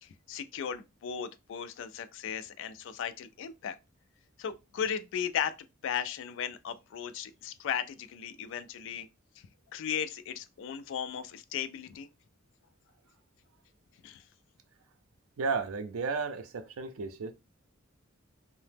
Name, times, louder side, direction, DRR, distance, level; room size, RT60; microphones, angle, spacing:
voice 1, 0.0-3.8 4.4-5.5 5.8-9.1 9.7-12.1 14.0-14.2, left 8 dB, 60° left, 0.3 m, -36 dB
voice 2, 15.4-17.3, right 4 dB, 80° right, 0.5 m, -33 dB
2.8 x 2.0 x 3.3 m
head